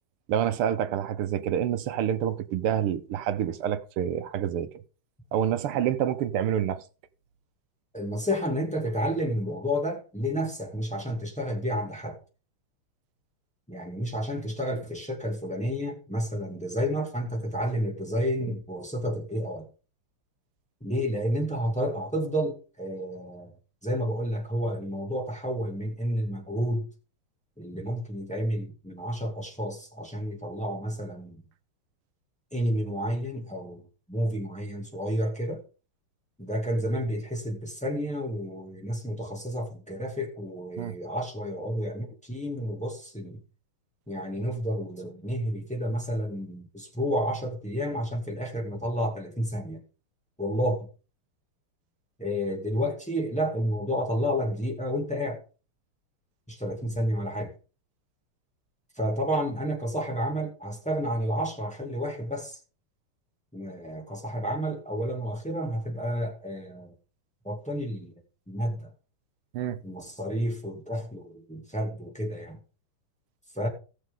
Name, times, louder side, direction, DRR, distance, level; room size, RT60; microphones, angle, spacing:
voice 1, 0.3-4.8 5.3-6.8 40.8-40.9 69.5-69.8, right 10 dB, 85° right, 1.8 m, -27 dB
voice 2, 7.9-12.2 13.7-19.7 20.8-23.5 23.8-26.9 27.6-31.4 32.5-33.8 34.1-35.6 36.4-43.4 44.1-49.8 50.4-50.9 52.2-55.4 56.5-57.5 59.0-62.6 63.5-66.9 67.4-68.1 68.5-68.9 69.8-72.6 73.5-73.7, equal, 5° left, 2.1 m, -30 dB
18.0 x 6.5 x 3.8 m
omnidirectional pair, 2.4 m